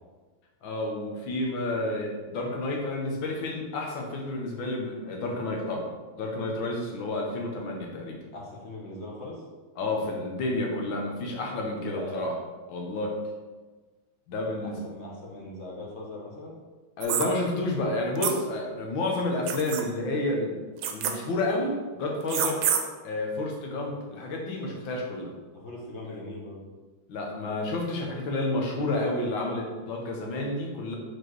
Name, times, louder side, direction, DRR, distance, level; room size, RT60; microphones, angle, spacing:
voice 1, 0.6-5.9 6.2-8.2 9.8-12.3 12.7-13.1 14.3-14.8 17.0-20.6 20.9-22.6 23.0-25.3 27.1-31.0, left 2 dB, 75° left, 0 dB, 1.8 m, -30 dB
voice 2, 8.3-9.4 11.8-12.3 14.6-16.6 25.5-26.6, left 2 dB, 40° left, -3 dB, 1.2 m, -40 dB
sound 1, 17.0-17.3 18.2-18.3 19.5-19.8 20.8-21.1 22.3-22.8, right 8 dB, 90° right, 1.5 m, -26 dB
4.8 x 4.4 x 4.6 m, 1.3 s
omnidirectional pair, 2.2 m